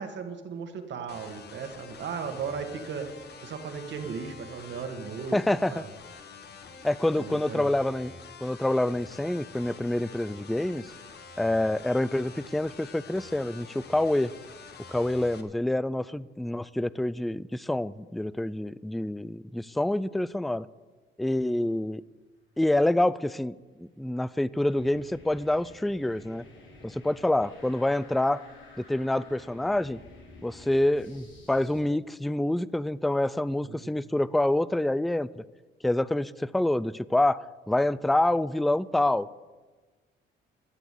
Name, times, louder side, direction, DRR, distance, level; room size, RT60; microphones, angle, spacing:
voice 1, 0.0-3.1 3.4-5.4 5.7-5.9 7.1-7.7 33.6-33.9, right 6 dB, 65° right, 6 dB, 1.8 m, -36 dB
sound 1, 1.1-15.4, left 5 dB, 55° left, 1.4 m, -47 dB
voice 2, 5.3-5.8 6.8-8.1 8.4-10.8 11.4-14.3 14.9-20.7 21.2-22.0 22.6-23.5 23.8-26.4 26.8-28.4 28.8-30.0 30.4-35.4 35.8-37.4 37.7-39.3, left 1 dB, ahead, 19 dB, 0.3 m, -27 dB
sound 2, 23.7-31.8, left 2 dB, 75° left, 4.9 m, -52 dB
13.0 x 7.0 x 8.4 m, 1.3 s
cardioid pair, 90°, 20 cm